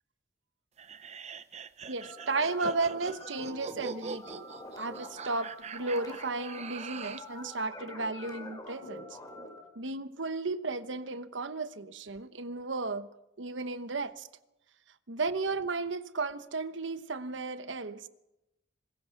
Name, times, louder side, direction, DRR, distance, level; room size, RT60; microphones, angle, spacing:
sound 1, 0.8-7.3, right 5 dB, 35° right, 0.7 m, -43 dB
voice 1, 1.9-4.5 4.8-9.2 9.7-13.1 13.4-14.3 15.1-18.1, right 3 dB, 80° right, 12 dB, 1.1 m, -34 dB
sound 2, 2.0-9.6, left 1 dB, 20° left, 5.1 m, -46 dB
25.0 x 21.0 x 5.8 m, 0.96 s
head